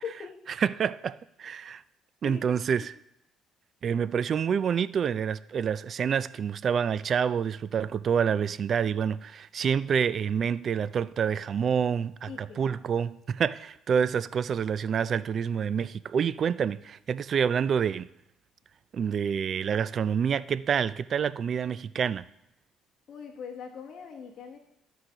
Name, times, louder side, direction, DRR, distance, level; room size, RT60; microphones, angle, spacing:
voice 1, 0.0-0.3 2.2-2.6 12.3-12.7 23.1-24.6, left 7 dB, 50° left, 1.0 m, -41 dB
voice 2, 0.6-1.8 2.2-2.9 3.8-18.1 18.9-22.3, right 7 dB, 50° right, 0.3 m, -27 dB
13.0 x 4.7 x 3.8 m
cardioid pair, 100°, 0 cm